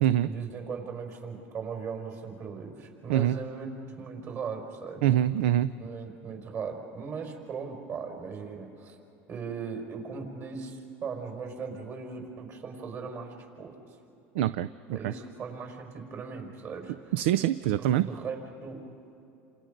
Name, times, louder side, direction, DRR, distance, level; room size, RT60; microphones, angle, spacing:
voice 1, 0.2-5.0 5.8-9.0 9.3-13.8 14.9-17.1 17.8-18.8, right 5 dB, 45° right, 1 dB, 5.4 m, -38 dB
voice 2, 5.0-5.7 14.3-15.1 17.1-18.1, right 12 dB, 85° right, 15 dB, 0.5 m, -25 dB
29.0 x 27.0 x 5.3 m, 2.8 s
supercardioid pair, 110°, 6 cm